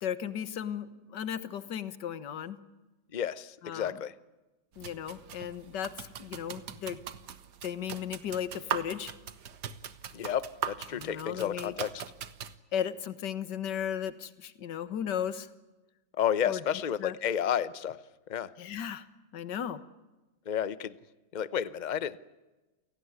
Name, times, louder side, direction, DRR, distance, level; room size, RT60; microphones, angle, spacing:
voice 1, 0.0-2.6 3.6-4.0 4.8-7.0 7.6-9.1 10.9-11.7 12.7-15.5 16.4-16.6 17.0-17.2 18.6-19.1 19.3-19.8, left 9 dB, 65° left, 13 dB, 1.9 m, -35 dB
voice 2, 3.1-4.1 10.1-12.0 16.2-18.0 18.3-18.5 20.5-20.9 21.3-22.2, left 9 dB, 45° left, 16 dB, 0.5 m, -31 dB
sound 1, 4.8-12.6, right 8 dB, 60° right, 1.7 m, -40 dB
29.0 x 18.0 x 9.6 m, 1.1 s
omnidirectional pair, 2.1 m